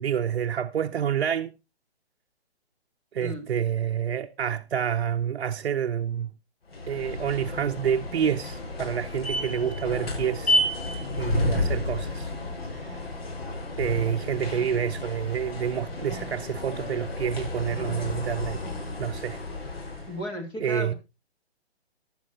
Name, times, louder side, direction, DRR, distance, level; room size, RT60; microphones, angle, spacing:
voice 1, 0.0-1.5 3.1-6.3 6.9-10.6 11.2-12.3 12.7-13.0 13.8-18.6 19.0-19.4 20.6-20.9, right 8 dB, 65° right, 0.8 m, -28 dB
voice 2, 3.2-3.6 20.1-20.9, equal, 15° left, 2.9 m, -35 dB
sound 1, 6.7-20.2, left 1 dB, 65° left, 6.8 m, -31 dB
15.5 x 11.5 x 2.8 m
hypercardioid pair, 165°, 33 cm